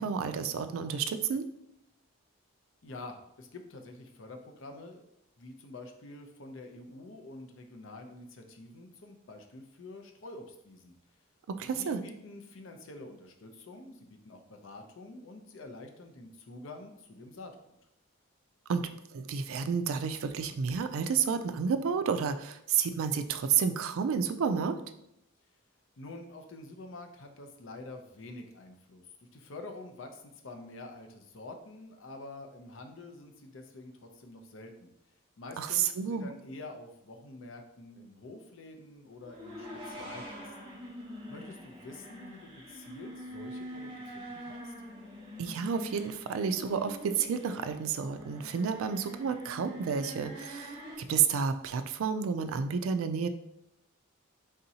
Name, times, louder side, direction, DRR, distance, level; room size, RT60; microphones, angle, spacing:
voice 1, 0.0-1.4 11.5-12.0 18.7-24.8 35.6-36.3 45.4-50.8 51.1-53.3, right 6 dB, 75° right, 10 dB, 0.3 m, -30 dB
voice 2, 2.8-5.0 5.4-11.0 11.7-17.8 26.0-34.9 35.4-40.8 41.3-44.7, left 2 dB, 65° left, 5 dB, 0.6 m, -47 dB
sound 1, 39.2-50.9, equal, 25° right, 0.8 m, -45 dB
4.1 x 3.6 x 2.7 m, 0.81 s
head